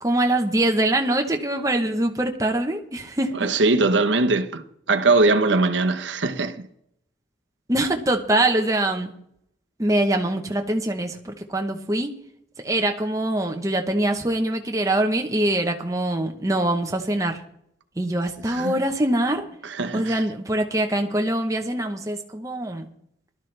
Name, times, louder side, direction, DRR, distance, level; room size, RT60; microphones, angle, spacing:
voice 1, 0.0-3.3 7.7-9.1 9.8-12.1 12.6-17.4 18.0-19.4 19.9-22.9, right 1 dB, 15° right, 0.9 m, -23 dB
voice 2, 3.4-4.6 4.9-6.7 18.5-18.7 19.6-20.2, right 3 dB, 80° right, 1.0 m, -21 dB
17.0 x 12.0 x 3.3 m
head